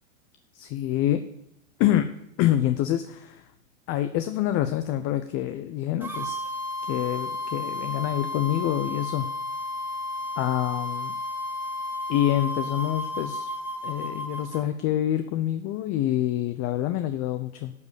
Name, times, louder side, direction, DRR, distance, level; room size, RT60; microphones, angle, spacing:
voice 1, 0.5-1.2 1.8-2.1 2.4-3.5 3.9-6.4 6.9-9.3 10.4-11.2 12.1-13.5 13.8-17.7, left 12 dB, 35° left, 10 dB, 0.7 m, -26 dB
sound 1, 6.0-14.6, left 1 dB, 5° right, 1.7 m, -33 dB
12.0 x 5.0 x 8.3 m, 0.80 s
hypercardioid pair, 105°, 40 cm